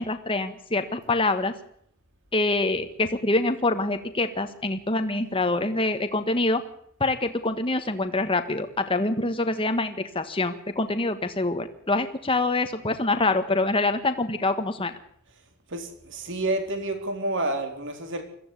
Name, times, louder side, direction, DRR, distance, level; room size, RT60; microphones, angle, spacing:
voice 1, 0.0-1.5 2.3-6.6 7.0-14.9, left 2 dB, 25° left, 8 dB, 1.5 m, -25 dB
voice 2, 15.7-18.2, right 2 dB, 55° right, 6 dB, 3.9 m, -29 dB
22.0 x 15.0 x 8.4 m, 0.67 s
head